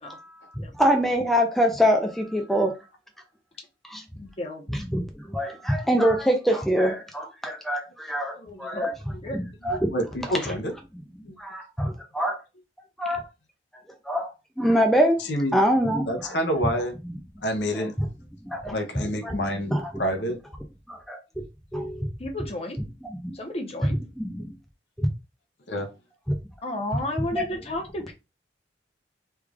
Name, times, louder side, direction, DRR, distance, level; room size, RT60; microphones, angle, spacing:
voice 1, 0.0-2.7 3.8-4.0 4.7-9.0 9.3-9.9 10.4-10.5 11.4-12.4 13.0-13.3 13.7-15.2 15.5-16.4 17.7-17.9 18.4-18.8 19.2-19.4 19.7-20.0 20.9-21.2 21.7-22.1 23.0-23.4 24.2-24.5 25.0-25.1 26.3-26.4 27.2-27.5, equal, ahead, 0.4 m, -25 dB
voice 2, 4.2-4.6 8.7-8.9 9.2-9.4 22.2-22.8 23.3-24.0 26.6-28.1, left 1 dB, 35° left, 0.8 m, -32 dB
voice 3, 8.4-8.9 9.9-10.7 11.2-11.3 15.3-15.6 16.1-16.9 17.4-17.9 18.7-20.4 25.7-25.9, equal, 70° left, 0.7 m, -28 dB
3.2 x 2.4 x 3.4 m
head